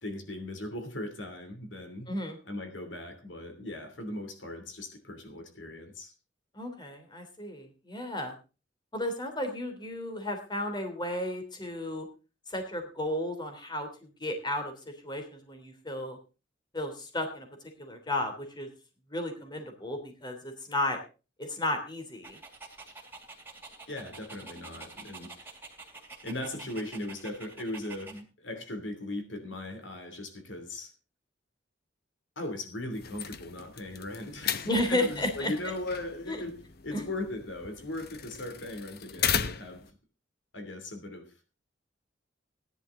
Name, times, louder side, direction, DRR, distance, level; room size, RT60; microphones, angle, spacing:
voice 1, 0.0-2.1 2.4-6.1 23.9-25.3 26.2-30.9 32.4-36.6 36.8-40.0 40.5-41.3, left 1 dB, 75° left, 6 dB, 3.0 m, -38 dB
voice 2, 2.1-2.4 6.5-8.3 8.9-12.1 12.5-13.9 14.2-14.7 15.0-16.2 16.7-17.5 17.8-18.7 19.1-21.0 21.4-22.4 34.7-35.5 36.3-36.4 36.9-37.1, left 1 dB, 25° left, 5 dB, 3.1 m, -33 dB
Dog, 22.2-28.2, right 3 dB, 10° right, 2.8 m, -48 dB
sound 1, 32.9-39.9, left 8 dB, 55° left, 0.9 m, -36 dB
16.5 x 11.0 x 3.8 m, 0.32 s
head